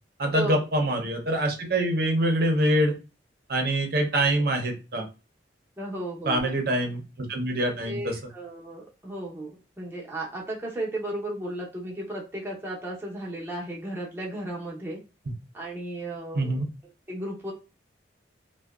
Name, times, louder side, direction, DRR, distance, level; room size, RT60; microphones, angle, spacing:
voice 1, 0.2-2.9 3.5-5.1 6.3-8.2 16.3-16.7, right 1 dB, 50° right, 4 dB, 0.6 m, -25 dB
voice 2, 5.8-6.5 7.8-9.5 9.8-15.0 15.5-16.6 17.1-17.5, right 1 dB, 10° right, -4 dB, 0.7 m, -34 dB
2.7 x 2.1 x 2.3 m, 0.30 s
head